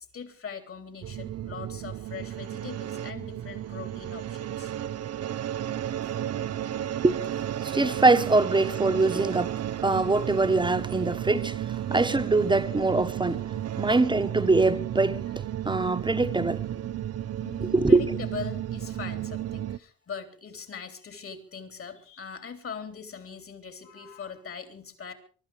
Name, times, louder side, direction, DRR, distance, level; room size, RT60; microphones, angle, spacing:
voice 1, 0.0-4.7 6.5-7.0 13.8-13.9 17.4-25.1, left 6 dB, 45° left, 3.4 m, -41 dB
sound 1, 1.0-19.8, right 11 dB, 55° right, 0.7 m, -33 dB
voice 2, 7.6-9.5 9.8-13.4 13.8-16.8 17.6-18.0, right 3 dB, 15° right, 1.3 m, -23 dB
23.5 x 12.0 x 4.8 m
cardioid pair, 90°, 30 cm